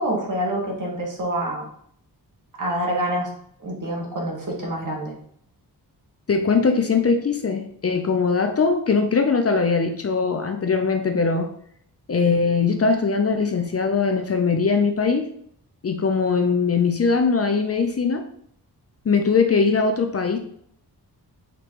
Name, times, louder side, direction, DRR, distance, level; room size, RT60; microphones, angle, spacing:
voice 1, 0.0-1.7 2.6-3.3 3.6-5.1, right 1 dB, 50° right, -2 dB, 1.6 m, -26 dB
voice 2, 6.3-11.5 12.1-15.2 15.8-18.2 19.1-20.4, left 5 dB, 40° left, 5 dB, 0.6 m, -21 dB
5.3 x 3.1 x 3.0 m, 0.64 s
cardioid pair, 75°, 39 cm